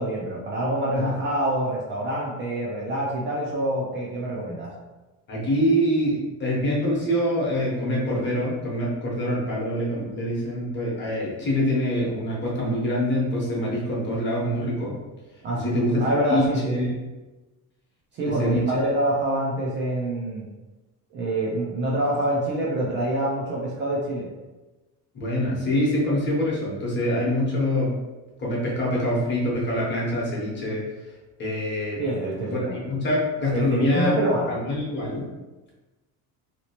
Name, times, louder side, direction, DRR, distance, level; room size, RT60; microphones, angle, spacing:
voice 1, 0.0-4.7 15.4-15.7 16.0-16.9 18.1-20.4 21.1-24.3 32.0-32.7 33.5-34.6, right 1 dB, 30° right, -4 dB, 0.4 m, -26 dB
voice 2, 5.3-15.0 15.5-16.0 16.3-17.0 18.2-18.7 25.1-28.0 28.4-30.8 31.4-32.0 32.5-34.1 34.5-35.3, equal, 30° left, -5 dB, 0.9 m, -25 dB
3.0 x 2.9 x 2.9 m, 1.1 s
cardioid pair, 170°, 36 cm